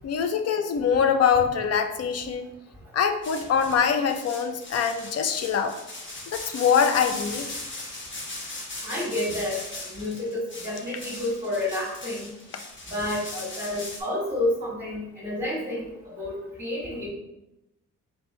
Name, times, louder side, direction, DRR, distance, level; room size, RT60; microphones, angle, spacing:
voice 1, 0.0-2.5 2.9-5.8 6.3-7.5, left 7 dB, 55° left, 8 dB, 0.5 m, -24 dB
sound 1, 3.2-14.0, left 2 dB, 40° left, 1.1 m, -38 dB
voice 2, 8.8-12.3 12.9-15.9 16.2-17.1, left 1 dB, 10° right, -7 dB, 1.4 m, -30 dB
4.3 x 3.0 x 3.1 m, 0.91 s
cardioid pair, 90°, 30 cm